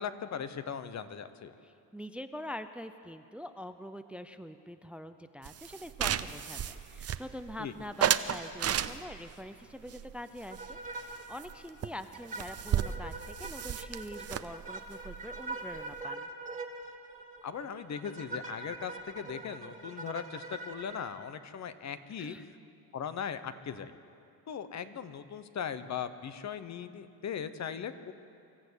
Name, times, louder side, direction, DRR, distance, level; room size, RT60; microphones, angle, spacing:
voice 1, 0.0-1.5 7.6-7.7 17.4-22.6 22.9-24.0 24.5-28.1, left 7 dB, 50° left, 12 dB, 1.1 m, -39 dB
voice 2, 1.6-16.3 22.2-22.5, equal, 5° right, 10 dB, 0.6 m, -44 dB
sound 1, 5.4-7.5 8.0-9.3 9.9-11.1 11.4-11.5 11.8-11.9 12.1-16.0, right 9 dB, 45° right, 0.7 m, -33 dB
sound 2, 10.5-11.2 11.5-11.6 12.1-21.0, right 2 dB, 20° right, 2.0 m, -43 dB
25.5 x 14.0 x 8.2 m, 2.5 s
cardioid pair, 130°, 36 cm